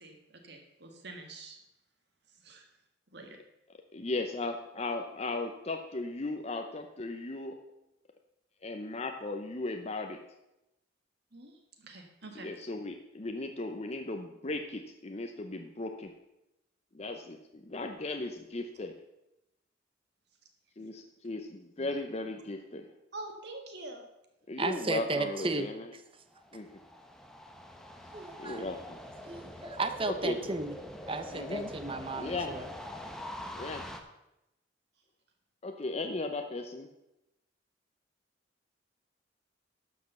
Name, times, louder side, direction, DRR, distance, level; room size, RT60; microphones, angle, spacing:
voice 1, 0.0-1.6 2.3-2.7 3.1-3.4 11.3-12.5 21.8-22.0 23.1-24.0, right 2 dB, 60° right, 3 dB, 1.7 m, -46 dB
voice 2, 3.9-7.6 8.6-10.2 12.4-16.1 16.9-18.9 20.8-22.9 24.5-25.9 26.5-26.6 28.4-29.0 30.2-30.4 31.3-31.7 32.1-32.5 33.5-33.8 35.6-36.9, left 2 dB, 35° left, 5 dB, 0.7 m, -36 dB
voice 3, 24.6-25.7 28.1-28.7 29.3-30.7 31.1-32.7, right 3 dB, 30° right, 9 dB, 0.8 m, -34 dB
sound 1, 26.3-34.0, left 1 dB, 5° left, 0.9 m, -44 dB
12.5 x 5.3 x 6.9 m, 0.90 s
head